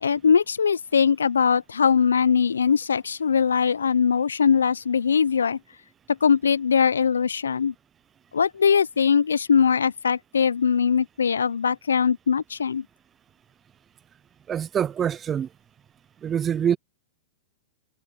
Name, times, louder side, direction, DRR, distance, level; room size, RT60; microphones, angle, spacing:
voice 1, 0.0-5.6 6.1-7.7 8.3-12.8, left 6 dB, 80° left, 0.8 m, -21 dB
voice 2, 14.5-15.5 16.2-16.8, right 8 dB, 25° right, 0.8 m, -25 dB
figure-of-eight pair, 105°, 0 cm